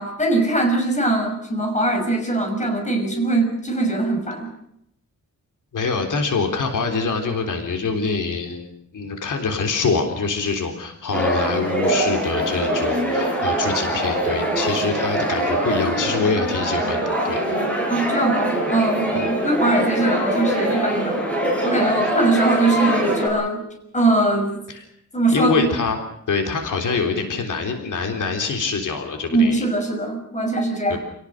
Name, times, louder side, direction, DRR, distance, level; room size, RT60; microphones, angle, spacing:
voice 1, 0.0-4.5 17.9-21.2 21.6-23.6 23.9-24.6 25.1-25.6 29.3-31.0, right 2 dB, 25° left, 4 dB, 6.1 m, -21 dB
voice 2, 5.7-17.4 19.1-19.3 24.7-24.8 25.3-26.0 26.3-29.6 30.9-31.0, left 4 dB, 85° left, 4 dB, 3.7 m, -25 dB
sound 1, 11.1-23.3, right 1 dB, 5° left, 7.6 m, -23 dB
28.5 x 18.0 x 6.5 m, 0.75 s
wide cardioid pair, 140°, 30 cm